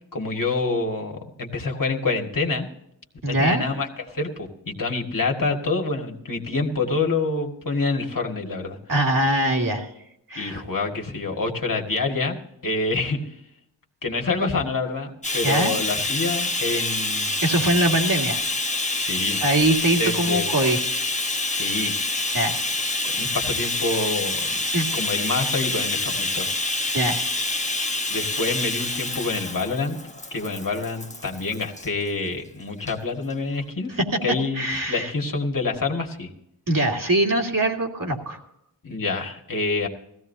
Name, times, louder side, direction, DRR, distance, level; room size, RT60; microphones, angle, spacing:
voice 1, 0.1-2.7 3.3-8.8 10.3-12.4 12.6-13.3 14.0-17.3 18.9-19.4 20.0-20.5 21.5-22.0 23.2-24.6 24.9-26.5 28.1-30.0 30.3-36.3 38.8-39.9, left 3 dB, 45° left, 1 dB, 2.0 m, -27 dB
voice 2, 3.2-3.6 8.9-9.9 10.3-10.6 15.4-15.7 17.4-18.4 19.4-20.8 22.3-22.6 24.7-24.9 26.9-27.2 34.5-35.1 36.7-38.4, right 1 dB, 45° right, 0 dB, 2.3 m, -22 dB
Bathtub (filling or washing), 15.2-31.9 32.8-32.9 33.3-33.4, left 2 dB, 15° left, 1.1 m, -27 dB
17.5 x 15.5 x 2.7 m, 0.77 s
wide cardioid pair, 75°, 44 cm